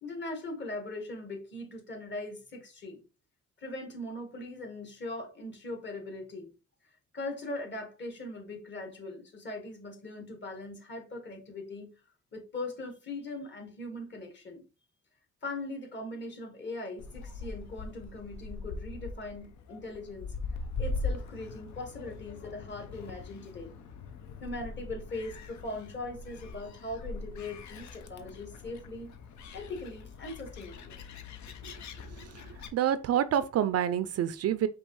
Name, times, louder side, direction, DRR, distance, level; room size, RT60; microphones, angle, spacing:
voice 1, 0.0-3.0 3.6-6.5 7.1-11.9 12.3-14.6 15.4-20.3 20.8-23.7 24.4-29.1 29.5-31.0, left 2 dB, 35° left, 1.6 m, -40 dB
Gull seagull, 17.0-32.7, left 4 dB, 70° left, 0.7 m, -41 dB
voice 2, 32.7-34.7, right 10 dB, 55° right, 0.4 m, -27 dB
5.3 x 2.8 x 3.1 m
cardioid pair, 90°, 30 cm